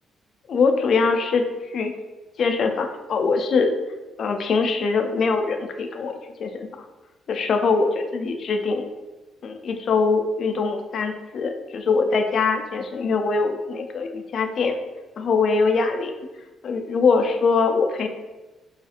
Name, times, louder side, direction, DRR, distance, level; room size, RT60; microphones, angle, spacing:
voice 1, 0.5-1.5 1.7-1.9 2.4-3.8 4.2-6.1 6.4-6.7 7.3-8.9 9.4-14.8 15.2-16.1 16.6-18.1, left 4 dB, 60° left, 6 dB, 0.3 m, -22 dB
2.7 x 2.4 x 2.4 m, 1.2 s
cardioid pair, 90°, 0 cm